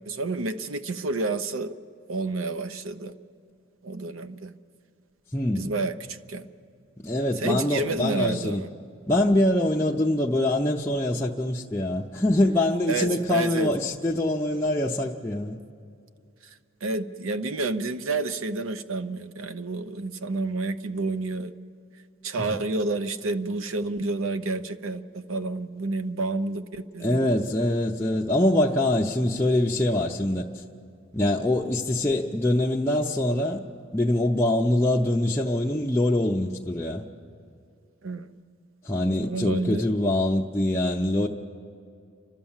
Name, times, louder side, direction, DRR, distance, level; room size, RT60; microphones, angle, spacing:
voice 1, 0.1-1.7 2.1-3.1 3.8-4.5 5.5-6.5 7.4-8.7 12.9-13.7 16.8-21.5 22.2-27.3 38.0-38.3 39.2-39.9, right 3 dB, 90° right, 10 dB, 0.7 m, -29 dB
voice 2, 5.3-5.7 7.0-8.6 9.1-15.6 22.5-22.6 27.0-30.6 31.1-33.6 33.9-37.0 38.8-41.3, left 1 dB, 10° left, -3 dB, 0.6 m, -24 dB
30.0 x 12.5 x 7.3 m, 2.4 s
head